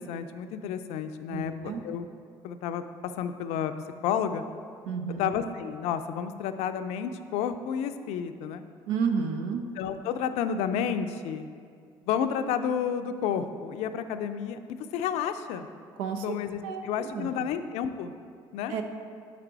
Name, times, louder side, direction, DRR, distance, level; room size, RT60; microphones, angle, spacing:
voice 1, 0.0-1.5 1.8-2.1 2.4-2.8 3.2-3.7 4.0-4.4 5.2-8.6 9.8-11.5 12.0-15.7 16.2-18.1 18.5-18.8, left 8 dB, 75° left, 10 dB, 0.4 m, -31 dB
voice 2, 1.3-1.8 4.9-5.3 8.9-9.6 16.0-16.2 16.6-17.3 18.7-18.8, right 6 dB, 85° right, 5 dB, 0.6 m, -31 dB
7.2 x 5.0 x 4.6 m, 2.2 s
hypercardioid pair, 60°, 11 cm